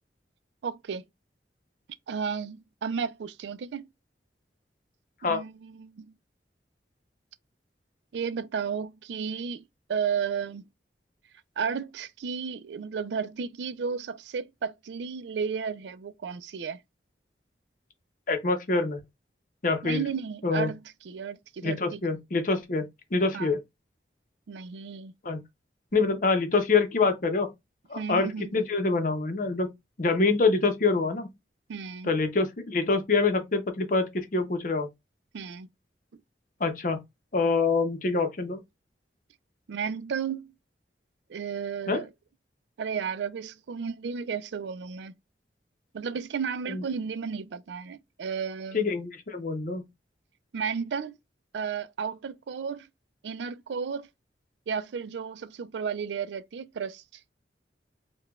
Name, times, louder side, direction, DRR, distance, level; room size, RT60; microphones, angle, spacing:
voice 1, 0.6-1.0 2.1-3.9 5.2-6.1 8.1-10.6 11.6-16.8 19.8-20.8 21.1-22.0 23.3-23.5 24.5-25.1 27.9-28.5 31.7-32.1 35.3-35.7 39.7-40.5 41.3-42.1 42.8-45.1 45.9-48.9 50.5-51.2 51.5-52.9 53.2-54.1 54.7-57.0, right 6 dB, 80° right, 0.4 m, -33 dB
voice 2, 18.3-19.0 19.6-20.0 20.4-20.7 21.6-22.9 23.1-23.6 25.2-25.4 25.9-27.5 27.9-29.7 30.0-31.3 32.0-34.9 36.6-37.0 37.3-38.6 41.9-42.0 46.7-46.8 48.7-49.8, left 3 dB, 50° left, 0.7 m, -25 dB
4.7 x 2.2 x 2.3 m
head